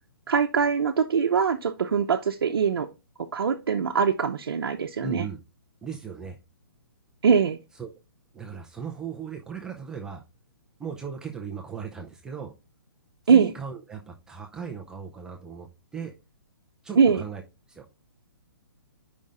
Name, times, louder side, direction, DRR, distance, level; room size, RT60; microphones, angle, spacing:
voice 1, 0.3-2.9 3.3-5.3 7.2-7.6 13.3-13.5 17.0-17.2, right 6 dB, 70° right, 0 dB, 0.8 m, -22 dB
voice 2, 5.0-5.4 5.8-6.4 7.8-7.9 8.3-10.2 10.8-12.5 13.3-15.7 15.9-16.1 16.8-17.4 17.7-17.8, right 6 dB, 5° right, 0 dB, 0.4 m, -37 dB
5.2 x 3.6 x 5.4 m, 0.26 s
hypercardioid pair, 160°, 12 cm